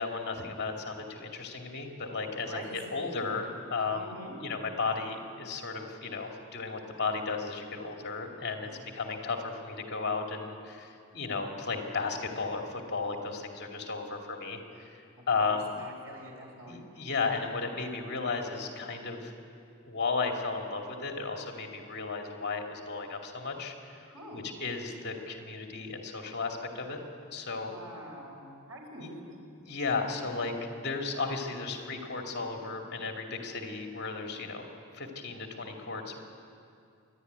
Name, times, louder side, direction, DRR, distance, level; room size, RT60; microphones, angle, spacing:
voice 1, 0.0-4.1 4.4-8.7 8.9-15.8 16.6-19.3 19.9-27.0 27.3-27.7 29.0-29.1 29.6-34.6 34.9-36.2, left 4 dB, 55° left, 2 dB, 2.6 m, -34 dB
voice 2, 2.4-2.9 3.9-4.4 8.6-8.8 15.4-16.8 24.1-24.5 27.6-29.2, right 1 dB, 85° right, 0 dB, 5.2 m, -46 dB
27.0 x 11.5 x 9.5 m, 2.5 s
head